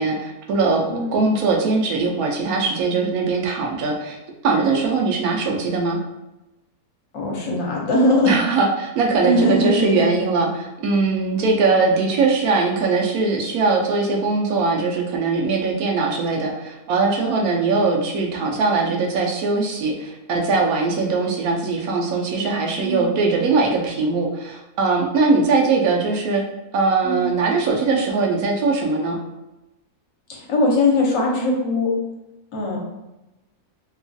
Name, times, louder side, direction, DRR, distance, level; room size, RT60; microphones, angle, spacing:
voice 1, 0.0-4.2 4.4-6.0 8.2-26.4 26.7-29.2, right 4 dB, 80° right, 1 dB, 1.0 m, -21 dB
voice 2, 0.9-1.3 7.1-8.3 9.2-10.1 22.8-23.1 27.0-27.3 30.3-31.9 32.5-32.8, left 2 dB, 70° left, -2 dB, 1.0 m, -20 dB
2.9 x 2.3 x 2.5 m, 0.97 s
omnidirectional pair, 1.5 m